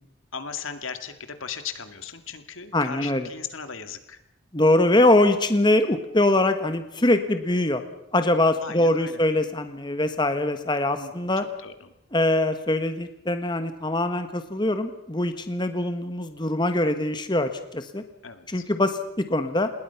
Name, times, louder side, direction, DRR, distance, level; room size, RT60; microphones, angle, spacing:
voice 1, 0.3-4.2 8.6-9.2 11.0-11.9 18.2-18.7, left 6 dB, 80° left, 9 dB, 2.2 m, -37 dB
voice 2, 2.7-3.3 4.5-7.8 8.1-11.4 12.1-18.0 18.5-19.7, left 1 dB, 20° left, 9 dB, 1.3 m, -23 dB
28.0 x 20.5 x 5.9 m, 0.81 s
head